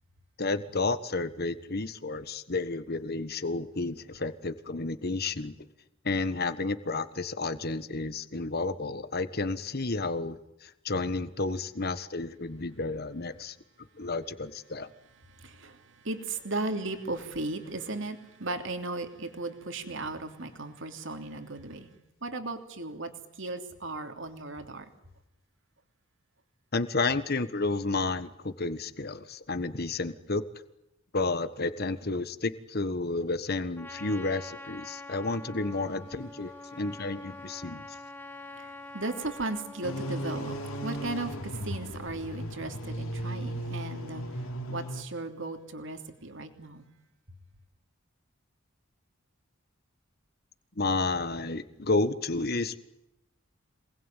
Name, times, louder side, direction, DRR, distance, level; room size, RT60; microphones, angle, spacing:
voice 1, 0.4-5.7 6.0-13.6 14.0-14.9 26.7-30.4 31.1-37.9 50.8-52.8, left 3 dB, 50° left, 12 dB, 1.5 m, -31 dB
voice 2, 15.3-21.9 22.2-24.9 37.7-37.8 38.4-46.9, right 2 dB, 60° right, 6 dB, 3.1 m, -36 dB
Trumpet, 33.8-41.3, left 2 dB, 10° left, 1.3 m, -45 dB
sound 1, 39.8-45.0, equal, 85° left, 3.2 m, -36 dB
27.0 x 20.5 x 9.2 m, 0.87 s
head